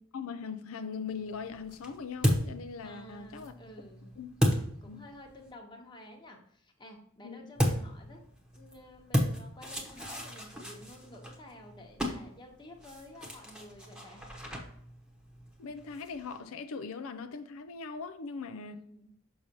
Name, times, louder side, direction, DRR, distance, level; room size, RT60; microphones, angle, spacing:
voice 1, 0.1-3.5 4.2-4.3 4.9-5.0 7.2-7.5 15.6-18.8, left 5 dB, 90° left, 0.5 m, -40 dB
sound 1, 1.1-5.5 7.6-16.4, equal, 5° right, 0.9 m, -35 dB
voice 2, 2.8-4.2 4.8-8.2 8.5-14.3 18.6-19.1, left 1 dB, 20° left, 1.0 m, -51 dB
6.6 x 5.5 x 2.9 m
head